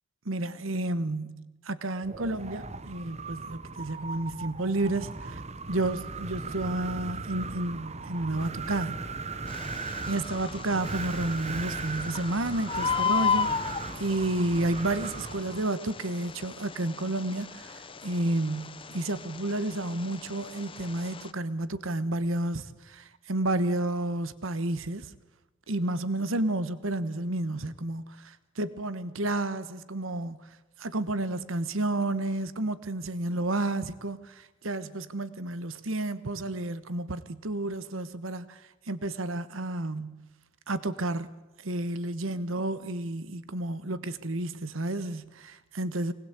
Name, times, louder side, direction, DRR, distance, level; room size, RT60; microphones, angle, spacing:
voice 1, 0.2-5.4 5.7-9.0 9.8-25.1 25.7-30.5 30.8-40.3 40.7-41.3 41.6-46.1, right 2 dB, 80° right, 1.3 m, -31 dB
Wind, 2.0-15.7, right 4 dB, 35° right, 1.0 m, -38 dB
Bird, 9.5-21.3, left 6 dB, 25° left, 0.8 m, -35 dB
25.5 x 19.5 x 8.3 m
head